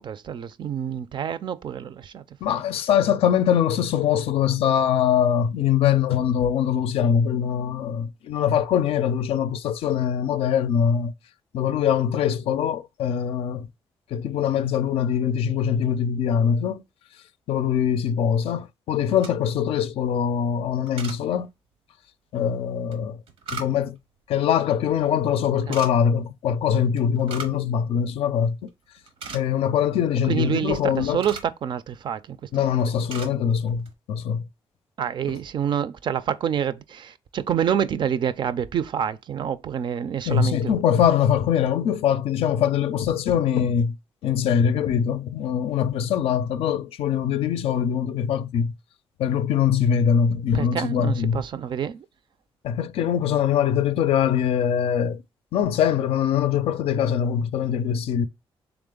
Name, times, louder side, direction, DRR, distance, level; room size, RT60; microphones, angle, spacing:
voice 1, 0.0-2.6 25.7-25.8 30.3-32.4 35.0-40.7 50.5-52.0, right 8 dB, 55° right, 0.4 m, -27 dB
voice 2, 2.4-11.1 11.5-13.7 14.1-16.8 17.5-21.5 22.3-23.2 23.5-24.0 24.3-28.7 29.3-31.2 32.5-34.4 35.3-35.4 40.3-44.0 44.2-48.7 49.2-51.4 52.6-55.2 55.5-58.3, left 8 dB, 75° left, 0.4 m, -23 dB
sound 1, 19.0-19.6 20.9-21.2 22.9-24.0 25.6-25.9 27.0-27.6 27.9-28.0 28.5-28.7 29.0-29.7 30.7-31.6 32.3-32.5 32.8-33.4 33.7-33.9, right 4 dB, 80° right, 0.8 m, -38 dB
3.5 x 3.4 x 3.7 m
cardioid pair, 85°, 10 cm